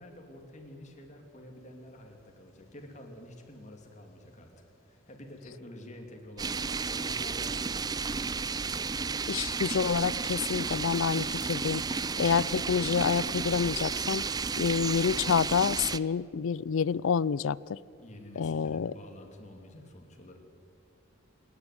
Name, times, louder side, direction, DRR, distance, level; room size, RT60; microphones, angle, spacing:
voice 1, 0.0-4.5 4.8-8.6 18.0-20.4, left 1 dB, 35° left, 2.9 m, -49 dB
sound 1, 6.4-16.0, right 5 dB, 20° right, 0.4 m, -32 dB
voice 2, 9.3-11.8 12.2-14.2 14.6-17.8 18.4-18.9, left 6 dB, 65° left, 0.4 m, -28 dB
27.0 x 10.5 x 9.7 m
head